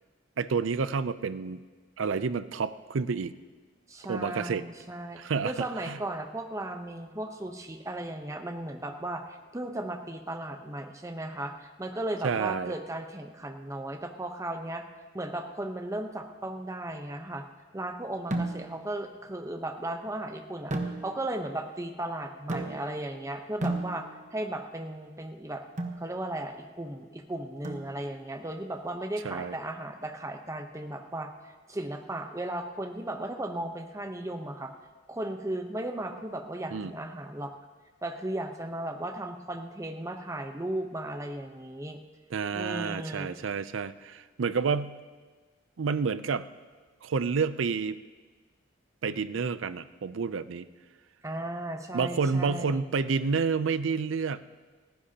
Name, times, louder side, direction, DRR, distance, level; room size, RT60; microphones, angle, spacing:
voice 1, 0.4-1.6 2.0-3.3 4.1-4.6 5.2-6.0 12.2-12.7 29.2-29.5 36.7-36.9 42.3-45.0 45.8-46.5 47.0-48.0 49.0-50.7 51.9-54.4, right 5 dB, 75° right, 14 dB, 0.5 m, -29 dB
voice 2, 3.9-14.8 15.1-17.5 17.7-20.7 21.0-25.6 26.0-31.3 31.7-34.7 35.1-37.5 38.0-42.0 42.5-43.3 51.2-52.9, right 1 dB, 15° right, 5 dB, 0.9 m, -36 dB
sound 1, 18.3-18.9 20.7-21.4 22.5-23.1 23.6-24.4 25.8-26.1 27.6-28.3, right 2 dB, 40° right, 1.1 m, -34 dB
29.5 x 10.5 x 2.9 m, 1.4 s
head